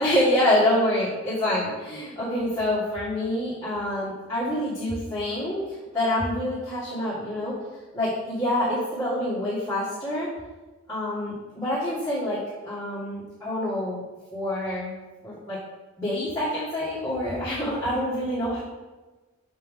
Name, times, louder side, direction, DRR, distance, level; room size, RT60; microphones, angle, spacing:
voice 1, 0.0-5.6 5.9-7.6 7.9-10.3 10.9-14.0 14.3-14.9 15.2-15.6 16.0-18.6, left 1 dB, 15° left, -12 dB, 1.9 m, -26 dB
6.2 x 5.6 x 3.7 m, 1.2 s
head